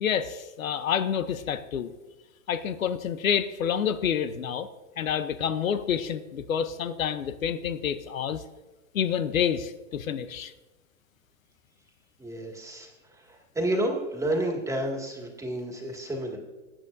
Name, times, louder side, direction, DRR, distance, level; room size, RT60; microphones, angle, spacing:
voice 1, 0.0-1.9 2.5-4.7 5.0-8.4 8.9-10.5, left 8 dB, 90° left, 12 dB, 0.8 m, -28 dB
voice 2, 12.2-16.4, right 1 dB, 10° right, 1 dB, 2.0 m, -30 dB
20.5 x 8.9 x 2.6 m, 1.1 s
hypercardioid pair, 120°, 39 cm